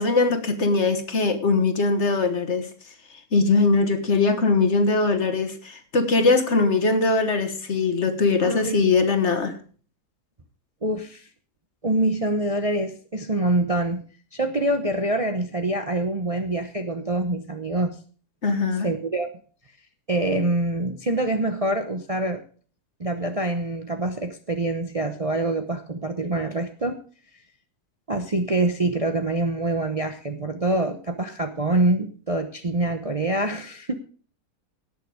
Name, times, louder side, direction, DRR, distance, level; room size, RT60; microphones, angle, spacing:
voice 1, 0.0-2.7 3.3-9.6 18.4-18.9, left 3 dB, 45° left, 7 dB, 1.6 m, -21 dB
voice 2, 8.4-8.8 10.8-11.3 11.8-14.0 14.3-17.9 18.8-19.3 20.1-22.4 23.0-27.0 28.1-33.9, right 2 dB, 30° right, 6 dB, 0.8 m, -25 dB
17.5 x 6.6 x 4.9 m, 0.42 s
omnidirectional pair, 1.7 m